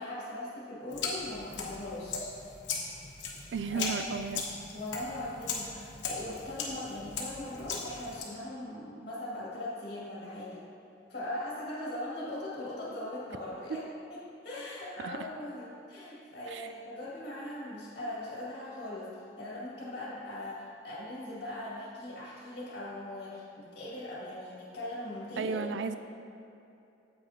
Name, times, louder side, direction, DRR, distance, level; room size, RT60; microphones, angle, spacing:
voice 1, 0.0-2.3 3.3-3.9 4.7-10.7 11.1-13.8 14.1-14.2 14.4-19.1 19.4-25.6, left 1 dB, 50° left, -7 dB, 1.9 m, -40 dB
sound 1, 0.9-8.2, left 4 dB, 85° left, 1.1 m, -38 dB
voice 2, 3.5-4.4 13.7-13.8 15.0-15.2 16.5-16.7 25.4-26.0, right 5 dB, 70° right, 10 dB, 0.4 m, -34 dB
8.9 x 7.8 x 2.8 m, 2.7 s
head